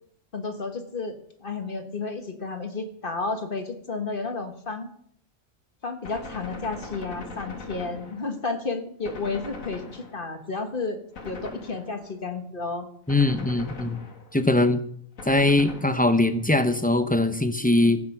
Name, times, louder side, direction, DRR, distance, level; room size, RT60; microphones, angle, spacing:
voice 1, 0.3-1.1 1.4-4.9 5.8-12.9, left 3 dB, 40° left, 6 dB, 1.5 m, -32 dB
Gunshot gunfire, 6.0-8.5 9.1-10.5 11.2-12.2 13.1-14.5 15.2-16.4, left 3 dB, 85° left, 2.2 m, -41 dB
voice 2, 13.1-14.0 14.3-14.8 15.3-18.0, left 2 dB, 10° left, 9 dB, 0.6 m, -21 dB
16.0 x 8.6 x 5.9 m, 0.67 s
omnidirectional pair, 1.4 m